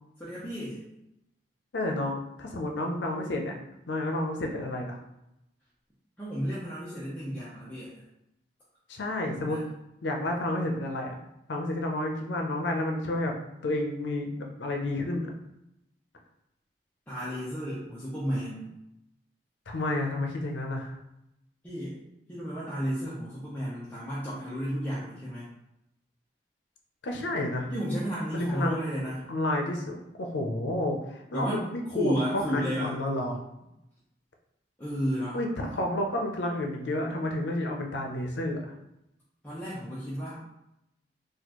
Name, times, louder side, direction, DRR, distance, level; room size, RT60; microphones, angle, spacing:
voice 1, 0.2-0.8 6.2-7.9 9.5-9.6 17.1-18.7 21.6-22.0 22.3-25.5 27.7-29.2 31.3-31.6 31.9-32.9 34.8-35.4 39.4-40.4, equal, 10° left, -10 dB, 0.7 m, -32 dB
voice 2, 1.7-3.6 3.9-5.0 8.9-9.6 10.0-11.2 11.5-13.3 13.6-15.3 19.7-20.9 27.0-27.7 28.3-28.8 29.3-33.4 35.3-38.7, left 1 dB, 90° left, 2 dB, 0.6 m, -30 dB
4.2 x 2.4 x 2.9 m, 0.87 s
head